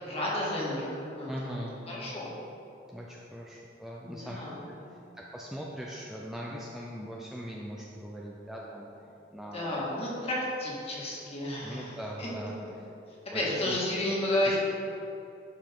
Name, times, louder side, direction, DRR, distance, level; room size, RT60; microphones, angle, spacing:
voice 1, 0.0-1.6 1.9-2.3 4.0-5.0 9.5-12.3 13.3-14.6, left 1 dB, 35° left, -5 dB, 1.9 m, -32 dB
voice 2, 1.3-1.8 2.9-4.4 5.2-8.9 9.3-10.3 11.6-12.6 13.3-13.8 14.4-14.6, equal, 5° right, -4 dB, 0.5 m, -40 dB
12.0 x 5.3 x 3.8 m, 2.8 s
head